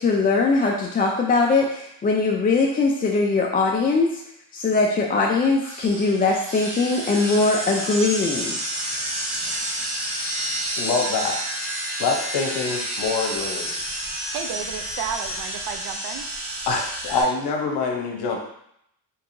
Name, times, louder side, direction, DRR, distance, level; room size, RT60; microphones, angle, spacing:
voice 1, 0.0-4.2 4.5-8.6, left 3 dB, 20° left, -1 dB, 0.3 m, -21 dB
sound 1, 5.6-17.2, right 1 dB, 30° right, 1.4 m, -30 dB
voice 2, 10.8-11.4 12.0-13.7 16.7-18.4, left 4 dB, 55° left, 1 dB, 0.9 m, -25 dB
voice 3, 14.3-16.2, right 8 dB, 55° right, 7 dB, 0.5 m, -32 dB
4.5 x 2.7 x 2.6 m, 0.74 s
cardioid pair, 85°, 47 cm